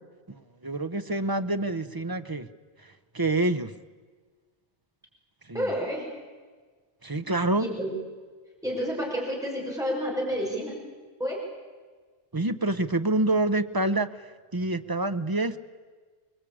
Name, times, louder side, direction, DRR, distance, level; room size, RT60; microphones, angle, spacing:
voice 1, 0.3-2.5 2.8-3.7 5.4-5.8 7.0-7.7 12.3-15.6, right 2 dB, 20° right, 9 dB, 0.7 m, -27 dB
voice 2, 5.5-6.0 7.6-7.9 8.6-10.7 11.2-11.4, equal, 5° right, -2 dB, 5.8 m, -29 dB
26.5 x 20.5 x 8.6 m, 1.5 s
omnidirectional pair, 1.2 m